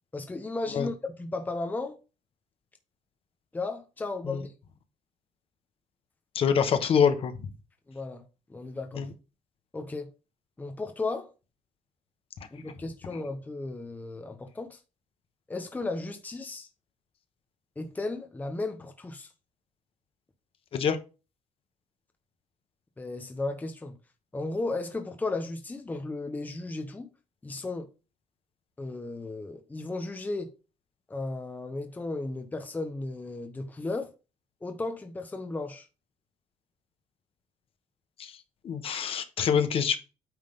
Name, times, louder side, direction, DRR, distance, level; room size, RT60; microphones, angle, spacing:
voice 1, 0.1-2.0 3.5-4.5 7.9-8.2 8.5-9.1 9.7-10.1 10.6-11.3 12.5-14.8 15.5-16.7 17.8-19.3 23.0-24.0 24.3-27.1 27.4-27.9 28.8-30.5 31.1-34.1 34.6-35.9, left 2 dB, 15° left, 1.0 m, -35 dB
voice 2, 6.3-7.3 8.9-9.1 20.7-21.0 38.2-38.3 38.6-40.0, left 7 dB, 50° left, 1.2 m, -25 dB
9.1 x 3.7 x 5.2 m
cardioid pair, 160°, 12 cm